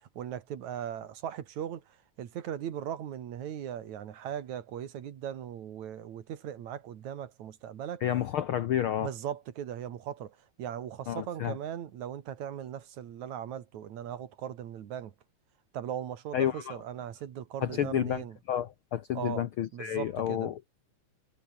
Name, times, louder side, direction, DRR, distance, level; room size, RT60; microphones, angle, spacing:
voice 1, 0.2-8.0 9.0-15.1 15.7-18.4 19.1-19.5 19.7-20.5, right 10 dB, 70° right, 3.0 m, -38 dB
voice 2, 8.0-9.1 11.1-11.6 16.3-16.8 17.6-20.6, left 11 dB, 70° left, 1.3 m, -30 dB
omnidirectional pair, 3.4 m